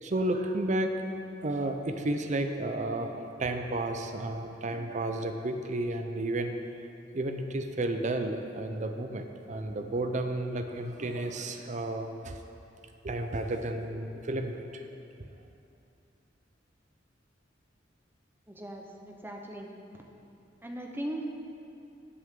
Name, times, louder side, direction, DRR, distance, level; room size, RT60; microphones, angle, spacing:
voice 1, 0.0-1.0 1.4-6.6 7.1-12.4 13.0-14.9, right 2 dB, 40° right, 6 dB, 0.6 m, -32 dB
voice 2, 18.5-19.7 20.6-21.3, right 1 dB, 10° right, 1 dB, 0.8 m, -38 dB
17.0 x 6.2 x 3.7 m, 2.7 s
head